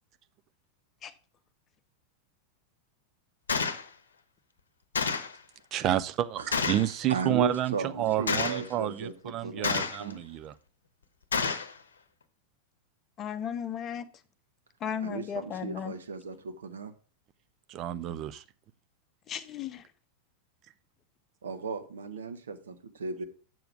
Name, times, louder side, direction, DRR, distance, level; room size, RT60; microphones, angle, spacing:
Gunshot gunfire, 3.5-3.8 5.0-5.4 6.5-6.9 8.3-8.7 9.6-10.1 11.3-11.7, left 5 dB, 70° left, 0.9 m, -29 dB
voice 1, 5.7-10.5 17.7-18.4, right 12 dB, 35° right, 12 dB, 0.6 m, -30 dB
voice 2, 7.1-10.2 15.0-16.9 21.4-23.2, right 4 dB, 65° right, 7 dB, 1.2 m, -36 dB
voice 3, 13.2-14.0 14.8-15.9 19.3-19.8, left 8 dB, 30° left, 11 dB, 0.8 m, -35 dB
7.8 x 7.0 x 4.7 m, 0.37 s
figure-of-eight pair, 90°, 0 cm